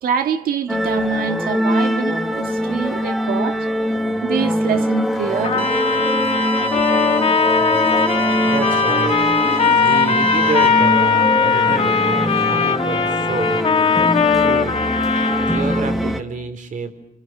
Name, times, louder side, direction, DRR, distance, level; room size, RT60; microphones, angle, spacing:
voice 1, 0.0-3.6 4.2-5.7, right 7 dB, 85° right, 1.8 m, -25 dB
sound 1, 0.7-16.2, equal, ahead, 1.6 m, -22 dB
Trumpet, 5.4-15.8, left 6 dB, 45° left, 1.4 m, -19 dB
sound 2, 5.6-10.7, right 5 dB, 40° right, 2.9 m, -27 dB
voice 2, 8.5-9.3 9.8-13.6 14.4-14.8 15.4-16.9, right 4 dB, 60° right, 4.1 m, -28 dB
27.5 x 27.0 x 7.7 m
cardioid pair, 125°, 15 cm